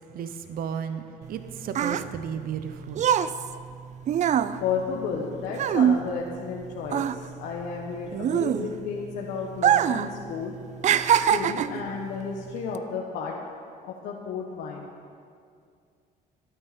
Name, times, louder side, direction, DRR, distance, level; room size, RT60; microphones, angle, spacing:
voice 1, 0.1-1.0 1.3-3.1, right 7 dB, 60° right, 9 dB, 0.8 m, -33 dB
sound 1, 1.2-6.6 6.8-9.0 9.5-10.1 10.4-11.9 12.6-12.8, right 9 dB, 45° right, 0.4 m, -24 dB
voice 2, 4.6-10.5 11.1-13.3 13.8-14.9, left 6 dB, 80° left, -1 dB, 1.4 m, -32 dB
24.5 x 9.0 x 4.3 m, 2.3 s
cardioid pair, 110°, 17 cm